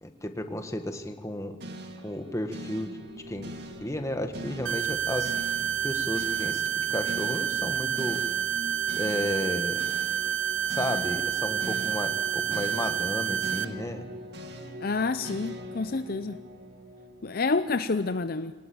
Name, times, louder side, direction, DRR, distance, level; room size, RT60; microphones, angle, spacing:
voice 1, 0.0-1.6 2.0-2.9 3.3-3.4 3.8-5.3 5.8-6.6 6.9-8.2 9.0-9.8 10.7-14.0, left 1 dB, 15° left, 6 dB, 1.7 m, -33 dB
sound 1, 1.6-17.9, equal, 60° right, 2.4 m, -42 dB
sound 2, 4.6-13.6, right 9 dB, 80° right, 0.8 m, -29 dB
voice 2, 14.8-16.4 17.2-18.5, left 3 dB, 50° left, 11 dB, 0.6 m, -28 dB
24.5 x 18.5 x 8.8 m, 1.4 s
head